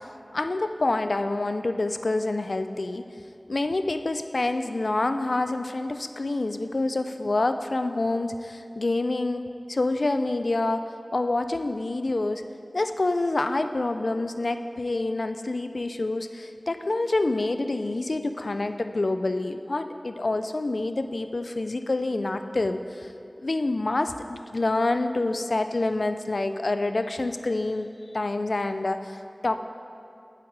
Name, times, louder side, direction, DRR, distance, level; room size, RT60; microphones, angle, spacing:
voice 1, 0.3-3.0 3.5-12.4 12.7-27.9 28.1-29.6, left 2 dB, 70° left, 9 dB, 0.4 m, -27 dB
8.6 x 7.5 x 4.6 m, 2.6 s
wide cardioid pair, 50°, 0 cm